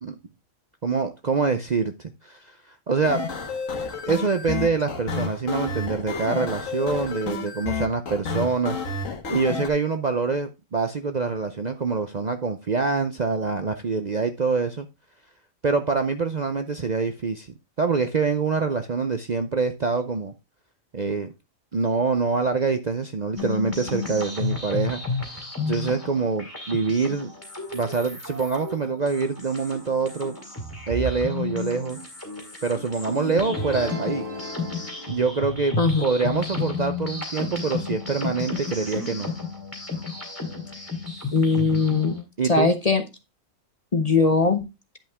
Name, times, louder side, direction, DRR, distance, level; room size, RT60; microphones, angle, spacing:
voice 1, 0.8-3.2 4.1-8.8 9.3-14.9 15.6-17.5 17.8-20.3 20.9-21.3 21.7-25.0 25.6-27.3 27.7-30.3 30.9-32.0 32.6-34.2 35.1-35.8 36.0-39.3 42.4-42.7, right 4 dB, 45° right, 0.6 m, -25 dB
sound 1, 3.0-9.7, left 4 dB, 70° left, 1.7 m, -30 dB
sound 2, 23.3-42.2, left 4 dB, 10° left, 3.0 m, -32 dB
sound 3, 33.1-35.9, left 2 dB, 15° right, 3.1 m, -36 dB
voice 2, 41.3-42.2 42.5-43.0 43.9-44.7, left 4 dB, 35° left, 0.8 m, -20 dB
10.0 x 5.6 x 3.5 m
omnidirectional pair, 1.4 m